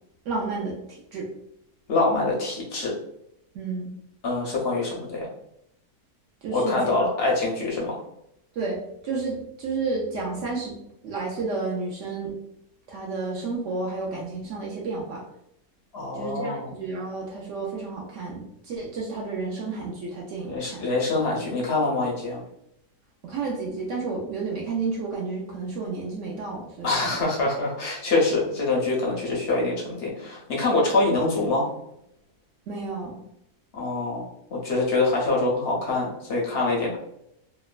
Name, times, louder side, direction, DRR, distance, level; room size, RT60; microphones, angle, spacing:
voice 1, 0.3-1.3 3.5-3.9 6.4-6.9 8.5-8.8 9.0-10.7 11.0-12.3 12.9-15.2 16.1-20.8 23.2-27.2 32.7-33.2, right 4 dB, 75° right, -2 dB, 0.7 m, -31 dB
voice 2, 1.9-2.9 4.2-5.3 6.5-8.0 15.9-16.7 20.5-22.4 26.8-31.7 33.7-34.3 34.5-37.0, left 2 dB, 65° left, -3 dB, 0.6 m, -25 dB
2.9 x 2.1 x 2.3 m, 0.77 s
omnidirectional pair, 1.7 m